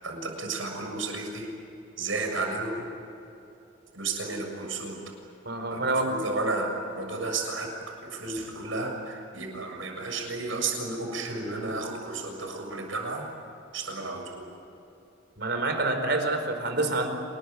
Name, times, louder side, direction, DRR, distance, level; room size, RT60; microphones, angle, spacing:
voice 1, 0.0-1.5 2.0-2.9 3.9-5.0 5.7-7.7 8.1-13.2 13.7-14.5, right 3 dB, 75° right, 2 dB, 6.9 m, -32 dB
voice 2, 5.4-6.1 15.4-17.1, right 2 dB, 55° right, 6 dB, 4.5 m, -27 dB
28.5 x 21.0 x 9.7 m, 2.8 s
head